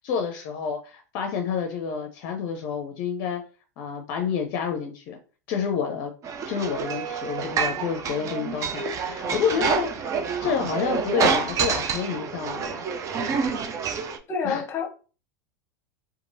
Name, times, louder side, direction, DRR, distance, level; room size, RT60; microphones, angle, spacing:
voice 1, 0.0-3.4 3.8-5.2 5.5-6.1 6.5-12.9 14.4-14.6, left 6 dB, 55° left, 4 dB, 0.5 m, -29 dB
sound 1, 6.2-14.2, right 6 dB, 35° right, 0.4 m, -28 dB
voice 2, 14.3-14.9, left 5 dB, 30° left, 3 dB, 0.8 m, -28 dB
2.9 x 2.4 x 2.6 m, 0.36 s
hypercardioid pair, 90°, 9 cm